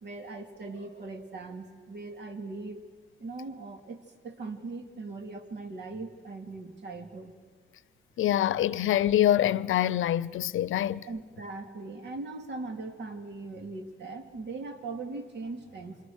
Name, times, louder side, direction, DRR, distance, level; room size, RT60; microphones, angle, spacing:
voice 1, 0.0-2.8 3.2-7.3 11.1-16.0, right 3 dB, 60° right, 2.8 m, -40 dB
voice 2, 8.2-11.1, left 12 dB, 75° left, 0.7 m, -25 dB
29.0 x 26.0 x 6.5 m
cardioid pair, 135°, 21 cm